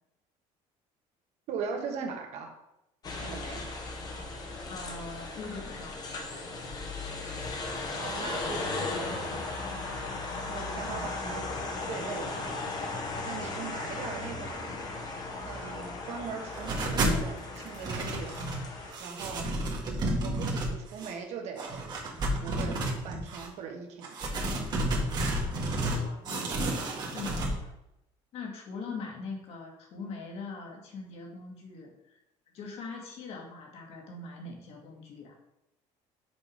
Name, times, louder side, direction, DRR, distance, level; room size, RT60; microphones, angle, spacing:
voice 1, 1.5-2.6 3.2-3.6 7.9-9.4 10.5-12.5 13.2-14.8 15.4-18.4 19.0-19.5 20.2-21.9 22.4-24.2, right 6 dB, 60° right, 3 dB, 1.4 m, -40 dB
sound 1, 3.0-18.9, left 3 dB, 30° left, 1.1 m, -36 dB
voice 2, 4.7-6.0 10.8-11.2 25.8-26.8 27.1-27.7 28.3-32.2 32.5-35.3, left 4 dB, 50° left, 0 dB, 1.9 m, -42 dB
sound 2, 16.5-17.2 17.6-18.6 18.9-21.1 21.6-23.5 24.0-26.0 26.3-27.5, right 1 dB, 35° right, 1.5 m, -31 dB
6.1 x 4.8 x 5.0 m, 0.87 s
cardioid pair, 165°, 13 cm